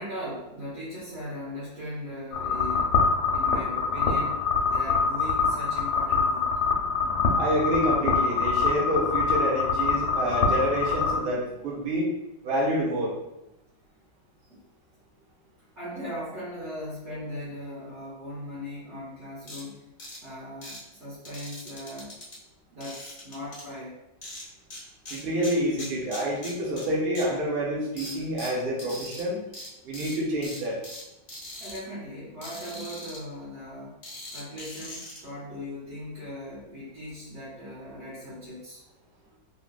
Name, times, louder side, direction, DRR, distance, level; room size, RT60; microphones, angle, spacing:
voice 1, 0.0-3.0 3.3-6.5 14.4-14.6 15.7-19.9 20.2-22.1 22.7-24.0 31.6-34.0 34.3-38.8, left 1 dB, 50° right, -10 dB, 0.8 m, -39 dB
sound 1, 2.3-11.2, left 5 dB, 85° left, 1.4 m, -25 dB
voice 2, 7.3-12.1 12.4-13.1 25.1-29.4 29.8-30.8, right 1 dB, 80° right, -4 dB, 0.5 m, -28 dB
sound 2, 19.5-19.6 20.0-20.2 20.6-20.8 21.2-22.4 22.8-23.6 24.2-24.8 25.1-26.9 27.1-27.2 28.0-29.2 29.5-29.7 29.9-30.2 30.4-31.0 31.3-31.8 32.4-33.2 34.0-35.2, left 1 dB, 45° left, 0.6 m, -40 dB
3.6 x 2.2 x 2.3 m, 0.89 s
omnidirectional pair, 2.1 m